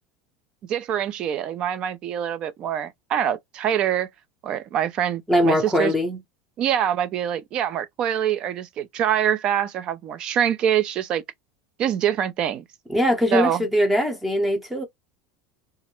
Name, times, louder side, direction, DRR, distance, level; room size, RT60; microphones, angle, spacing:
voice 1, 0.7-4.1 4.4-5.9 6.6-11.2 11.8-12.6 13.3-13.7, right 9 dB, 35° right, 0.4 m, -25 dB
voice 2, 5.3-6.2 12.9-14.8, equal, 5° right, 0.7 m, -21 dB
2.3 x 2.1 x 2.9 m
supercardioid pair, 160°, 3 cm